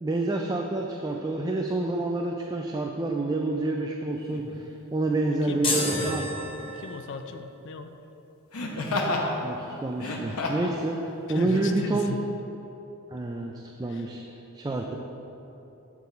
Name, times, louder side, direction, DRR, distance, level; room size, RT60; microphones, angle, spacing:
voice 1, 0.0-6.3 9.4-12.1 13.1-13.5 13.8-14.2 14.5-15.0, right 2 dB, 20° right, 1 dB, 0.3 m, -28 dB
Laughter, 4.3-4.5 5.8-6.2 8.5-9.3 9.9-10.7 11.5-11.6, left 2 dB, 85° left, 0.9 m, -30 dB
voice 2, 5.3-6.3 6.7-7.9 11.3-12.2 13.9-14.1, left 4 dB, 55° left, 7 dB, 0.4 m, -37 dB
sound 1, 5.6-7.2, left 2 dB, 25° left, 0.8 m, -30 dB
6.8 x 6.1 x 4.8 m, 3.0 s
head